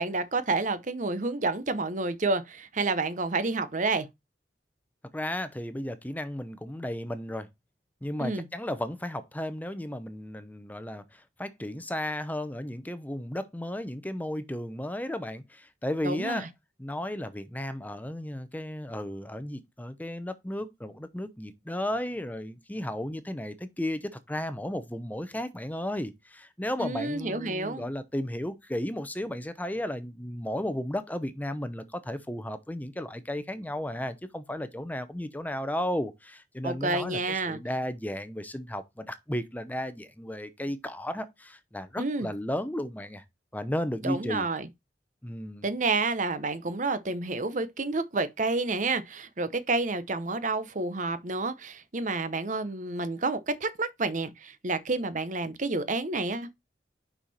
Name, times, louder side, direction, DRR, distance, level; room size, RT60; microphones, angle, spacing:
voice 1, 0.0-4.1 8.2-8.4 16.0-16.5 26.8-27.9 36.6-37.6 42.0-42.3 44.0-44.7 45.6-56.5, right 3 dB, 45° right, 0.9 m, -29 dB
voice 2, 5.1-7.5 8.0-16.5 16.8-43.2 43.5-44.5 45.2-45.6, left 1 dB, 10° left, 0.8 m, -34 dB
5.7 x 5.6 x 4.2 m
head